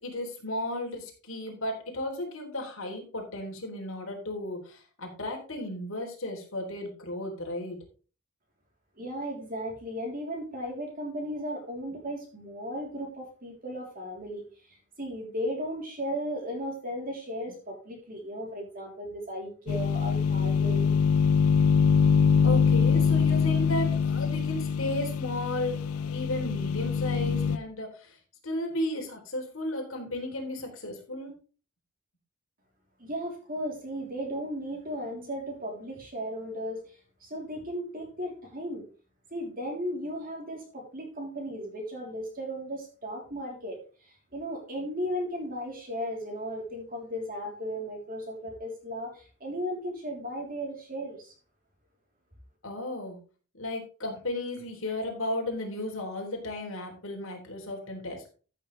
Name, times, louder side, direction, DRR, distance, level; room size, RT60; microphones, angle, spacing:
voice 1, 0.0-7.8 22.4-28.2 28.4-31.3 52.6-53.2 53.5-58.3, left 1 dB, 60° left, 1 dB, 3.6 m, -34 dB
voice 2, 9.0-20.9 33.0-38.8 39.3-51.3, equal, 40° right, 1 dB, 3.5 m, -36 dB
sound 1, 19.7-27.6, left 6 dB, 80° left, 0.6 m, -24 dB
14.5 x 7.0 x 3.3 m, 0.37 s
head